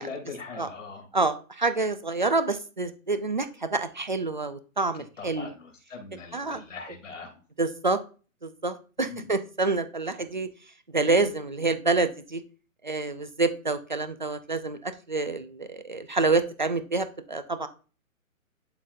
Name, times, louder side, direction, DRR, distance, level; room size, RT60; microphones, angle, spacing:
voice 1, 0.0-1.1 5.2-7.3 9.0-9.3, left 4 dB, 60° left, 1 dB, 2.7 m, -41 dB
voice 2, 1.1-5.5 6.3-6.6 7.6-8.0 8.4-10.5 10.9-12.4 12.8-17.7, right 3 dB, 35° right, 11 dB, 0.4 m, -27 dB
11.0 x 4.0 x 2.6 m, 0.36 s
hypercardioid pair, 170°, 42 cm